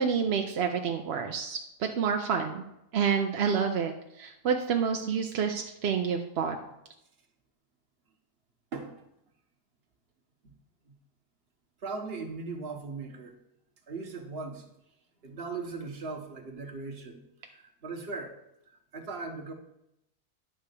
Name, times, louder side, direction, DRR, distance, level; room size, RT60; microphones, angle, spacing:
voice 1, 0.0-2.6 2.9-6.6, right 6 dB, 60° right, 4 dB, 0.7 m, -28 dB
voice 2, 8.7-9.0 10.4-10.5 10.9-11.0 11.8-13.4 13.9-14.7 15.2-18.3 18.7-19.5, right 4 dB, 45° right, 4 dB, 1.2 m, -39 dB
10.0 x 3.5 x 6.7 m, 0.83 s
omnidirectional pair, 1.6 m